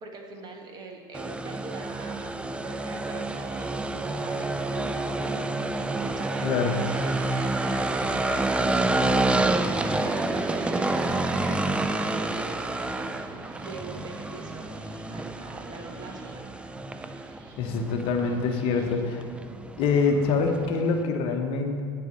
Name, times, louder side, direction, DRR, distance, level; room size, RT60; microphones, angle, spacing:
voice 1, 0.0-14.7 15.1-16.6, right 3 dB, 35° right, 2 dB, 1.4 m, -43 dB
sound 1, 1.1-21.0, right 2 dB, 10° right, 0.4 m, -29 dB
sound 2, 2.0-20.9, right 3 dB, 55° right, 1.4 m, -45 dB
voice 2, 6.4-6.7 17.6-19.2 19.8-21.8, left 4 dB, 50° left, 4 dB, 1.1 m, -25 dB
9.2 x 4.7 x 6.7 m, 2.3 s
hypercardioid pair, 85°, 12 cm